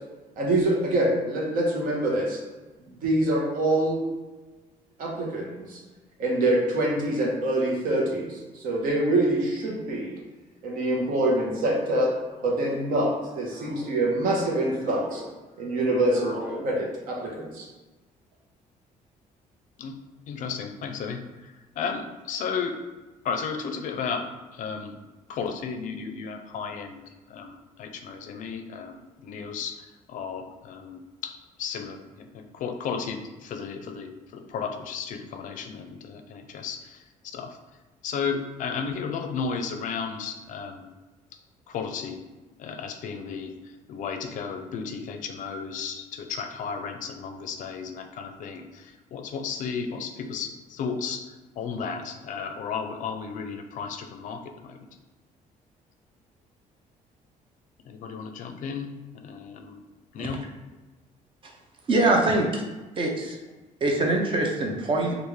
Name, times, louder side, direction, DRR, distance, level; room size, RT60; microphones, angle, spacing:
voice 1, 0.4-2.4 3.0-4.0 5.0-5.8 6.2-10.2 10.6-12.2 12.4-15.2 15.6-16.4 16.6-17.7, right 1 dB, 70° right, -2 dB, 0.9 m, -25 dB
sound 1, 8.6-8.7 9.7-10.0 10.9-11.3 12.2-12.6 13.2-14.0 14.4-15.3 15.6-16.6, equal, 5° right, 1.0 m, -43 dB
voice 2, 20.3-22.8 23.2-25.0 25.3-37.6 38.0-40.9 41.7-42.2 42.6-54.8 57.8-58.9 59.1-59.8 60.1-60.4, left 6 dB, 60° left, 6 dB, 0.4 m, -34 dB
voice 3, 61.9-62.6 63.0-63.4 63.8-65.2, right 2 dB, 35° right, 1 dB, 0.6 m, -23 dB
3.5 x 2.4 x 3.1 m, 1.2 s
cardioid pair, 140°, 15 cm